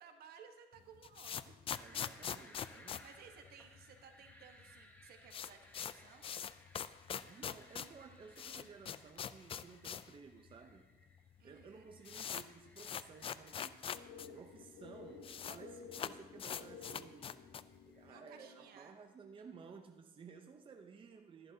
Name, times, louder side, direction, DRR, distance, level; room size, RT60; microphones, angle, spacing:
voice 1, 0.0-1.5 1.9-2.0 3.0-6.4 11.4-11.9 18.1-19.0, right 7 dB, 65° right, 5 dB, 1.3 m, -58 dB
sound 1, 0.8-4.0 4.3-4.4 4.6-4.7 5.0-10.2 10.5-10.6 11.3-11.4 11.6-14.3 14.6-14.7 14.8-15.6 15.9-17.8, left 8 dB, 35° left, 0.3 m, -43 dB
sound 2, 1.7-19.7, left 1 dB, 10° left, 1.3 m, -65 dB
voice 2, 1.8-3.0 7.1-10.9 11.4-13.9 14.3-17.4 17.9-21.5, right 5 dB, 30° right, 4 dB, 0.7 m, -55 dB
sound 3, 13.9-18.9, left 5 dB, 75° left, 1.0 m, -54 dB
13.5 x 11.0 x 2.8 m, 1.2 s
cardioid pair, 110°, 17 cm